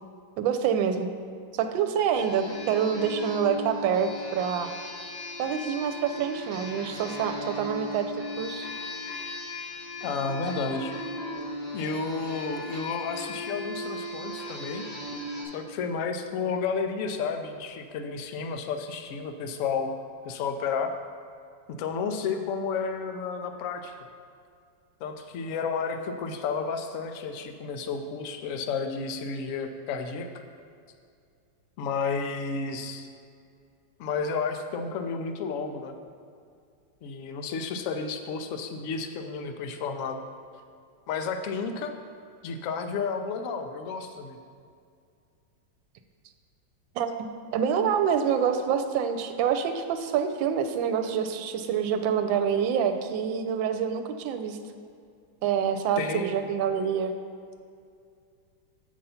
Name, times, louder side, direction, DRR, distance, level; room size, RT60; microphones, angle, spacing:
voice 1, 0.4-1.1 1.5-4.7 5.4-8.7 46.9-47.3 47.5-54.6 55.4-57.1, right 7 dB, 85° right, 8 dB, 1.3 m, -27 dB
sound 1, 2.1-15.4, left 1 dB, 60° left, 2.1 m, -37 dB
voice 2, 10.0-10.9 11.7-14.8 15.5-20.0 20.2-20.9 21.7-23.9 25.0-30.4 31.8-33.1 34.0-35.9 37.0-40.2 41.1-41.9 42.4-44.4 56.0-56.3, left 5 dB, 75° left, 6 dB, 0.7 m, -31 dB
6.7 x 5.2 x 5.6 m, 2.3 s
omnidirectional pair, 2.1 m